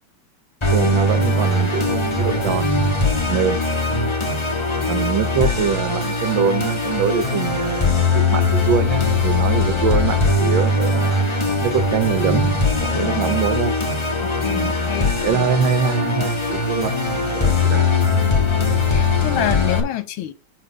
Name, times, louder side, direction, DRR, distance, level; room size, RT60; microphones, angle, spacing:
Musical instrument, 0.6-19.8, left 3 dB, 20° left, 0.9 m, -20 dB
voice 1, 0.7-2.7 3.3-3.6 4.9-11.2 11.6-13.7 14.5-14.7 15.2-16.9 17.3-17.9, right 7 dB, 70° right, 1.5 m, -23 dB
voice 2, 12.9-13.4 14.2-15.5 18.7-20.3, left 12 dB, 80° left, 1.7 m, -28 dB
5.8 x 4.4 x 6.4 m
omnidirectional pair, 2.3 m